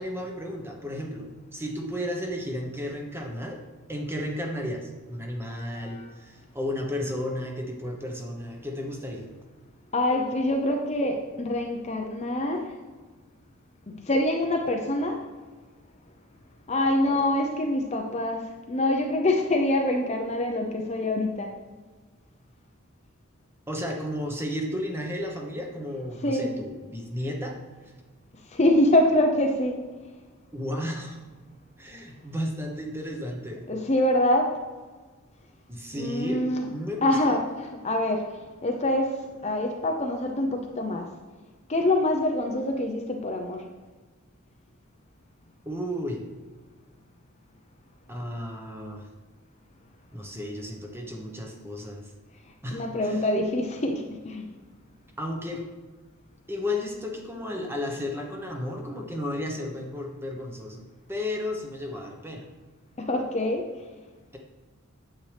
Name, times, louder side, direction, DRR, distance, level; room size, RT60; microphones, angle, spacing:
voice 1, 0.0-3.6 3.9-9.3 23.7-27.6 30.5-31.2 31.8-33.6 35.7-36.4 36.7-37.4 45.7-46.2 48.1-49.1 50.1-52.1 52.6-53.3 55.2-55.6 56.5-62.4, left 1 dB, 10° right, 1 dB, 1.0 m, -33 dB
voice 2, 5.4-6.0 9.9-12.7 13.9-15.2 16.7-21.5 26.2-26.6 28.5-29.8 33.7-34.6 35.9-36.7 37.0-41.1 41.7-43.6 52.7-54.5 63.0-63.7, left 1 dB, 30° left, 3 dB, 0.7 m, -25 dB
9.1 x 7.8 x 3.4 m, 1.3 s
head